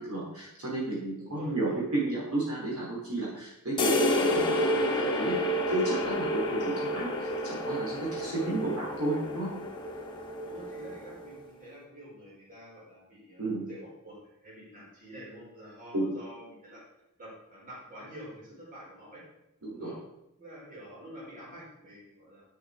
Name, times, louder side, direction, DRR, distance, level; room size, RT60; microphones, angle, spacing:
voice 1, 0.0-5.4 5.7-9.5 13.4-13.6 15.9-16.1 19.6-19.9, right 2 dB, 70° right, -5 dB, 3.4 m, -32 dB
voice 2, 1.2-1.8 8.2-8.8 10.4-16.8 17.2-19.2 19.8-20.0 20.4-22.4, equal, 35° right, -5 dB, 4.4 m, -48 dB
sound 1, 3.8-11.3, left 1 dB, 20° left, 1.5 m, -30 dB
11.0 x 7.1 x 4.8 m, 0.88 s
head